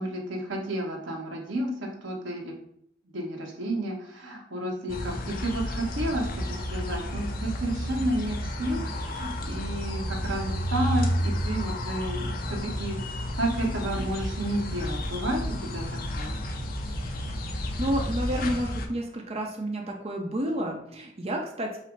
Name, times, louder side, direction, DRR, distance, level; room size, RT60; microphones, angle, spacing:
voice 1, 0.0-2.5 3.1-15.8 16.1-16.4, right 1 dB, 90° right, -1 dB, 1.2 m, -31 dB
sound 1, 4.9-18.9, equal, 50° left, 0.6 m, -31 dB
voice 2, 17.5-21.8, equal, 35° right, 1 dB, 0.6 m, -30 dB
5.7 x 2.0 x 4.6 m, 0.70 s
head